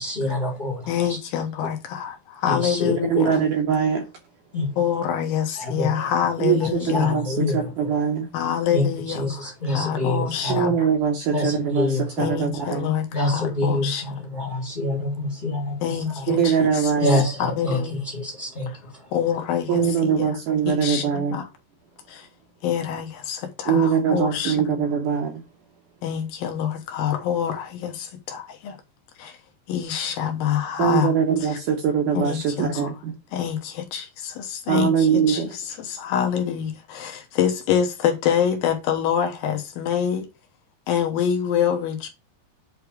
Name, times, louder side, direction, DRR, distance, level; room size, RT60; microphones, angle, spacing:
voice 1, 0.0-1.2 2.5-3.3 4.5-4.8 5.6-6.1 6.6-8.0 8.7-10.7 11.3-12.3 12.6-12.7 13.1-16.4 17.0-19.1, left 2 dB, 45° left, 0.6 m, -27 dB
voice 2, 0.9-3.4 4.8-7.2 8.3-10.7 12.2-14.0 15.8-16.9 17.4-18.0 19.1-20.4 20.7-21.5 22.1-22.3 22.6-24.6 26.0-28.8 29.2-29.4 29.7-31.1 31.4-31.6 32.1-32.9 33.3-40.3 40.9-42.1, left 9 dB, 70° left, 2.7 m, -26 dB
voice 3, 3.1-4.1 6.4-8.3 10.5-12.9 16.3-17.2 19.7-21.4 23.7-25.4 30.8-33.1 34.7-35.5, right 7 dB, 75° right, 2.0 m, -22 dB
8.2 x 3.3 x 4.8 m
omnidirectional pair, 4.7 m